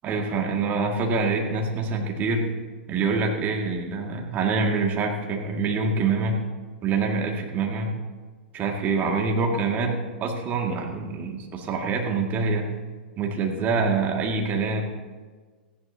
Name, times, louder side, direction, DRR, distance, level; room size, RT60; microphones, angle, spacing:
voice 1, 0.0-2.5 2.9-6.4 6.8-8.0 8.5-12.7 13.2-14.8, right 4 dB, 30° right, 2 dB, 2.1 m, -25 dB
17.5 x 14.5 x 2.8 m, 1.4 s
figure-of-eight pair, 100°, 6 cm